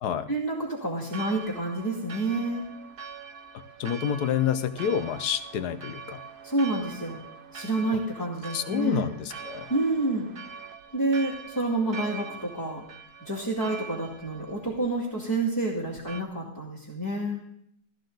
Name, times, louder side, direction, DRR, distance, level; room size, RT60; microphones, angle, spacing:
voice 1, 0.3-2.6 6.4-7.2 7.5-9.1 9.7-10.3 10.9-12.8 13.2-17.4, right 2 dB, 10° left, -5 dB, 2.1 m, -28 dB
Church bell, 1.1-16.2, right 6 dB, 45° right, 0.8 m, -43 dB
voice 2, 3.8-6.2 8.5-9.7, left 9 dB, 75° left, 12 dB, 1.3 m, -28 dB
15.0 x 13.5 x 3.9 m, 0.69 s
omnidirectional pair, 1.7 m